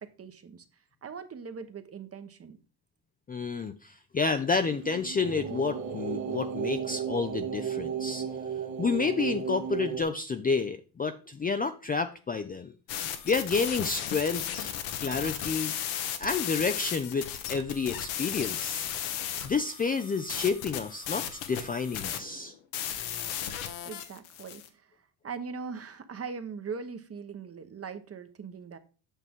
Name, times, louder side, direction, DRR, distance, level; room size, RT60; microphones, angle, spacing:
voice 1, 0.0-0.6 1.0-2.6 23.8-24.9 25.2-28.8, right 5 dB, 30° right, 10 dB, 1.1 m, -40 dB
voice 2, 3.3-8.2 8.8-12.7 13.2-14.7 15.0-15.7 16.2-18.9 19.4-22.5, left 4 dB, 20° left, 8 dB, 0.5 m, -30 dB
sound 1, 4.6-10.0, right 7 dB, 70° right, 2.0 m, -34 dB
sound 2, 12.9-24.7, left 10 dB, 75° left, 1.2 m, -35 dB
8.4 x 5.9 x 3.7 m, 0.36 s
supercardioid pair, 80°, 48 cm